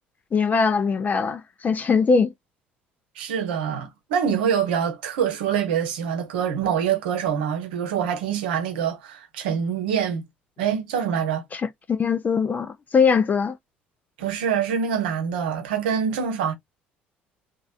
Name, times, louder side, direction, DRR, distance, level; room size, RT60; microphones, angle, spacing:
voice 1, 0.3-2.3 11.5-13.6, left 5 dB, 30° left, 0.4 m, -21 dB
voice 2, 3.2-10.2 10.6-11.4 14.2-16.5, right 8 dB, 70° right, 0.8 m, -25 dB
3.1 x 2.4 x 2.4 m
figure-of-eight pair, 55°, 6 cm